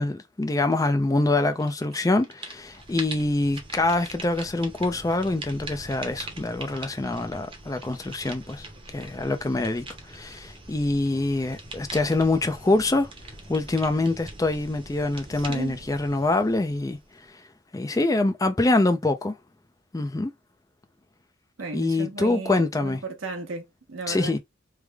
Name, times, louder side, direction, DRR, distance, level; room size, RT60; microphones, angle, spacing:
voice 1, 0.0-8.7 8.9-9.8 10.1-13.1 13.5-17.0 17.7-19.4 19.9-20.3 21.7-23.0 24.1-24.4, left 2 dB, 15° left, 0.4 m, -25 dB
sound 1, 1.6-2.0 2.2-17.2, right 2 dB, 25° right, 0.8 m, -42 dB
voice 2, 15.3-15.9 21.6-24.4, right 3 dB, 85° right, 0.9 m, -35 dB
3.3 x 2.0 x 3.4 m
head